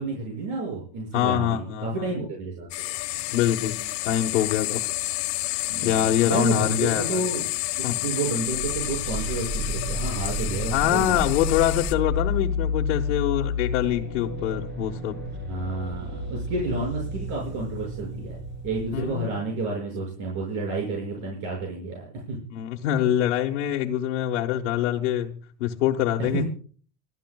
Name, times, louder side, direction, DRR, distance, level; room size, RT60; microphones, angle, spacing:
voice 1, 0.0-2.7 5.7-7.5 7.8-11.2 15.5-18.4 18.6-22.4 22.8-23.0 26.2-26.5, right 3 dB, 60° right, -2 dB, 6.6 m, -30 dB
voice 2, 1.1-2.1 3.3-4.8 5.8-7.3 7.8-8.0 10.7-15.2 18.9-19.4 22.5-26.4, left 11 dB, 85° left, 0 dB, 1.4 m, -25 dB
sound 1, 2.7-11.9, left 19 dB, 60° left, 1.4 m, -30 dB
sound 2, 8.5-19.1, left 3 dB, 30° right, 4.7 m, -31 dB
27.0 x 13.5 x 2.4 m, 0.44 s
supercardioid pair, 120°, 35 cm